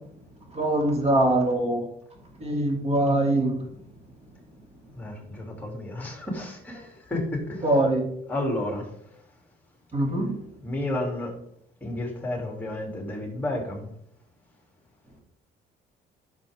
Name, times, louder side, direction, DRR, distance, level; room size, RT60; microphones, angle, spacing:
voice 1, 0.5-1.9 2.4-3.6 7.6-8.0 9.9-10.4, right 1 dB, 40° right, 2 dB, 2.7 m, -23 dB
voice 2, 4.9-7.6 8.3-8.8 10.6-11.3 11.8-13.9, left 1 dB, 10° left, 0 dB, 3.1 m, -31 dB
11.0 x 6.7 x 3.7 m, 0.70 s
cardioid pair, 110°, 17 cm